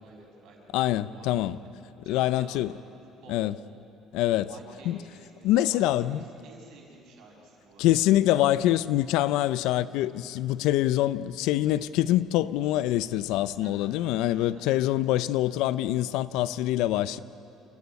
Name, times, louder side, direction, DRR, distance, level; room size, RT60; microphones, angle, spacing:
voice 1, 0.0-1.5 2.0-3.4 4.5-7.9 13.6-13.9 14.3-14.6, right 3 dB, 65° right, 6.4 m, -51 dB
voice 2, 0.7-1.6 2.1-2.7 3.3-3.5 4.1-4.5 4.9-5.0 5.4-6.2 7.8-17.2, left 14 dB, 85° left, 0.6 m, -25 dB
28.5 x 14.5 x 9.7 m
cardioid pair, 165°, 0 cm